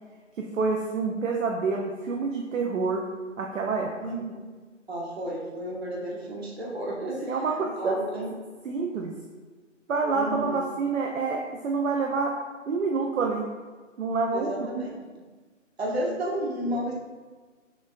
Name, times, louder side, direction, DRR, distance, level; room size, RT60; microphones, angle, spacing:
voice 1, 0.5-3.0 3.4-3.9 7.0-8.0 8.6-9.1 9.9-12.3 12.7-13.4 14.0-14.7, right 4 dB, 80° right, 1 dB, 0.6 m, -27 dB
voice 2, 4.0-4.3 4.9-8.3 10.1-10.6 14.3-15.0 15.8-16.9, right 1 dB, 55° right, -4 dB, 1.1 m, -32 dB
6.0 x 2.2 x 2.5 m, 1.4 s
hypercardioid pair, 165°, 38 cm